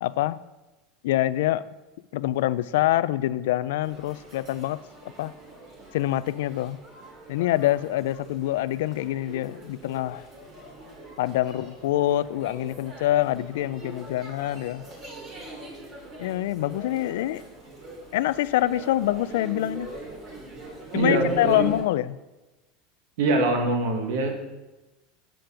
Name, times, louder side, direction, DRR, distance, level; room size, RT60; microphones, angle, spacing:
voice 1, 0.0-0.4 1.0-1.6 2.1-4.8 5.2-5.3 5.9-6.8 7.3-10.3 11.2-14.8 16.2-17.4 18.1-19.9 20.9-22.2, left 14 dB, 85° left, 17 dB, 0.3 m, -25 dB
sound 1, 3.8-21.8, right 1 dB, 35° right, 2.6 m, -43 dB
voice 2, 20.9-21.7 23.2-24.5, right 2 dB, 85° right, 3 dB, 1.6 m, -24 dB
7.6 x 5.1 x 5.6 m, 1.1 s
supercardioid pair, 145°, 0 cm